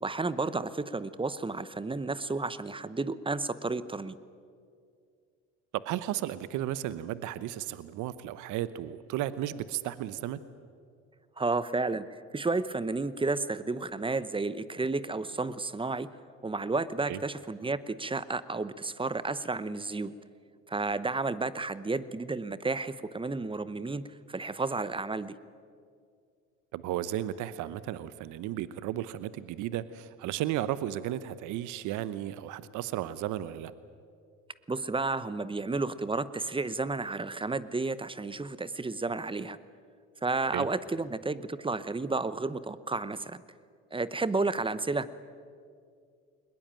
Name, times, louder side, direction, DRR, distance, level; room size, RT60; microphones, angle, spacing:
voice 1, 0.0-4.2 11.4-16.1 16.4-20.1 20.7-25.3 34.7-39.6 40.2-43.4 43.9-45.1, right 3 dB, 15° right, 15 dB, 0.9 m, -32 dB
voice 2, 5.7-10.4 17.1-17.2 26.7-33.7 40.5-40.7, right 13 dB, 65° right, 15 dB, 0.9 m, -34 dB
22.0 x 20.5 x 9.0 m, 2.3 s
hypercardioid pair, 70°, 33 cm